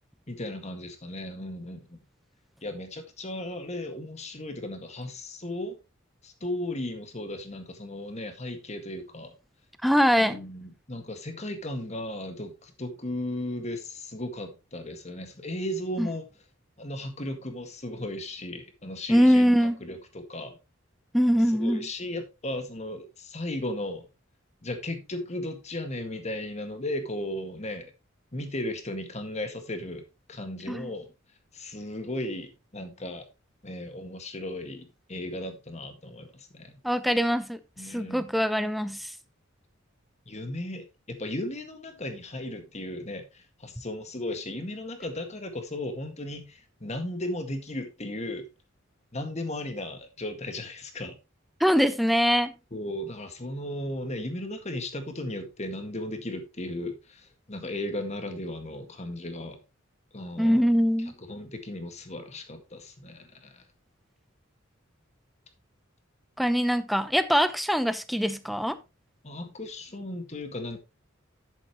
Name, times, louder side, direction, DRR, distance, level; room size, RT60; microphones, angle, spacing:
voice 1, 0.3-2.0 2.6-5.8 6.2-9.3 10.2-16.3 16.8-20.6 21.5-24.1 24.6-27.9 28.3-31.1 31.5-33.2 33.6-36.8 37.8-38.3 40.3-48.4 49.1-51.2 52.7-59.6 60.1-60.6 61.2-63.6 69.2-70.8, left 1 dB, 35° left, 1.9 m, -36 dB
voice 2, 9.8-10.4 16.0-16.1 19.1-19.8 21.1-21.9 30.7-30.9 36.8-37.6 37.9-39.1 51.6-52.5 60.4-61.1 66.4-68.8, equal, ahead, 0.7 m, -23 dB
10.5 x 8.4 x 3.0 m
head